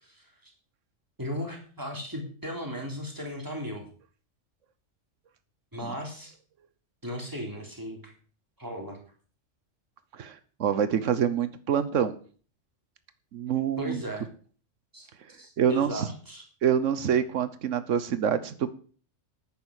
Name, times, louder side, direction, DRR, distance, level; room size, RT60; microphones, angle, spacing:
voice 1, 0.0-0.5 1.2-3.9 5.7-6.3 7.0-8.1 8.6-9.0 13.8-14.3 14.9-16.4, equal, 15° right, 1 dB, 3.3 m, -36 dB
voice 2, 10.1-12.2 13.3-14.0 15.6-16.1 16.6-18.7, right 8 dB, 90° right, 13 dB, 1.3 m, -26 dB
10.0 x 9.3 x 6.5 m, 0.43 s
omnidirectional pair, 1.2 m